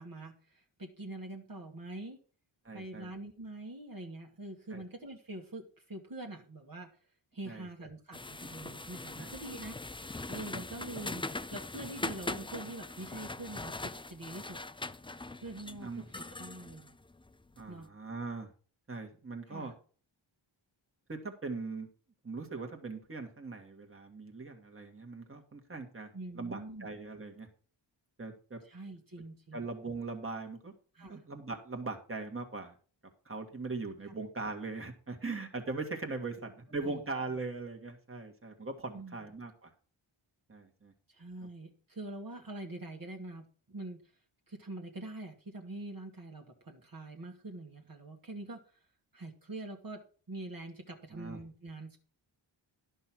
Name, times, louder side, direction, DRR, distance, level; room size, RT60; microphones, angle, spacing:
voice 1, 0.0-2.2 2.7-6.9 7.3-9.8 10.3-14.6 15.4-17.0 17.7-17.9 19.5-19.7 26.1-26.9 28.6-29.6 30.9-31.2 34.1-34.2 36.8-37.0 38.9-39.2 41.1-44.0 44.5-48.9 49.1-50.0 50.3-52.0, right 2 dB, 45° right, 1 dB, 1.8 m, -44 dB
voice 2, 2.6-3.1 4.7-4.8 7.5-7.7 9.2-9.3 10.5-10.6 15.8-16.1 17.6-18.5 18.9-19.7 21.1-21.9 22.2-26.1 26.4-27.5 28.2-28.6 29.5-30.7 31.0-32.7 33.3-39.7 40.5-40.9 51.1-51.4, right 3 dB, 25° right, 3 dB, 1.9 m, -40 dB
sound 1, 8.1-17.7, left 2 dB, 10° left, 0.4 m, -41 dB
11.0 x 5.5 x 6.0 m, 0.40 s
cardioid pair, 55°, 47 cm